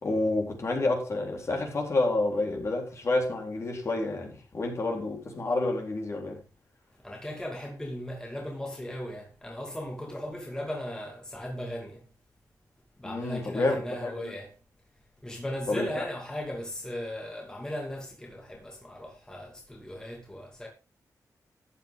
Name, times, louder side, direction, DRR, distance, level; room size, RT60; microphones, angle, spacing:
voice 1, 0.0-6.4 13.0-14.3 15.7-16.1, left 2 dB, 45° left, 3.9 m, -29 dB
voice 2, 7.0-12.1 13.0-14.5 15.2-20.7, left 1 dB, 10° left, 2.5 m, -37 dB
14.0 x 9.2 x 3.7 m
wide cardioid pair, 130°, 7 cm